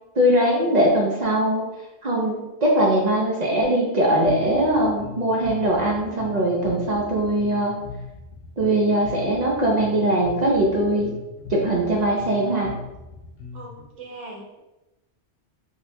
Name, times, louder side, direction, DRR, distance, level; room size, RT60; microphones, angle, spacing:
voice 1, 0.1-1.6 2.0-7.7 8.6-11.1 11.5-12.7, right 1 dB, 45° right, -2 dB, 0.6 m, -21 dB
Bass guitar, 4.2-13.8, left 4 dB, 75° left, 0.9 m, -39 dB
voice 2, 13.5-14.6, right 2 dB, 90° right, -1 dB, 1.1 m, -40 dB
2.8 x 2.2 x 4.1 m, 0.99 s
omnidirectional pair, 1.2 m